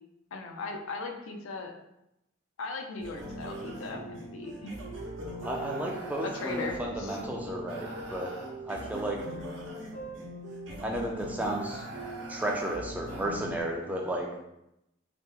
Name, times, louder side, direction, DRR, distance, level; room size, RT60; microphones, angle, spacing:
voice 1, 0.3-1.7 2.6-4.7 6.2-7.2, left 3 dB, 90° left, 4 dB, 0.5 m, -38 dB
sound 1, 3.0-13.6, right 1 dB, 70° right, 0.8 m, -40 dB
voice 2, 5.4-8.3 8.7-9.2 10.8-11.8 12.3-14.3, right 1 dB, 10° right, -1 dB, 0.3 m, -33 dB
2.9 x 2.1 x 3.5 m, 0.85 s
head